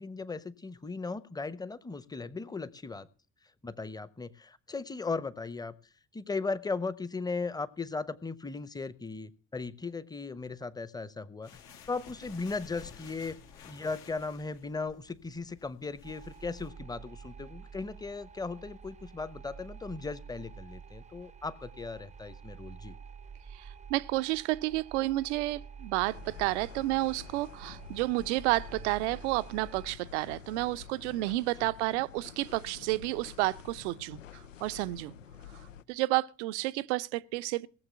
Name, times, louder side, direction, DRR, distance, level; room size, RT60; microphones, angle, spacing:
voice 1, 0.0-3.1 3.6-5.7 6.1-11.5 11.9-13.4 13.7-23.0 31.6-31.7, left 4 dB, 10° left, 1.0 m, -37 dB
sound 1, 11.4-16.7, left 7 dB, 65° left, 2.1 m, -53 dB
sound 2, 16.0-29.9, right 6 dB, 20° right, 0.7 m, -49 dB
voice 2, 23.5-35.1 35.9-37.7, right 19 dB, 65° right, 0.7 m, -31 dB
sound 3, 26.0-35.8, left 8 dB, 85° left, 0.6 m, -49 dB
18.0 x 7.2 x 6.9 m
figure-of-eight pair, 55°, 37 cm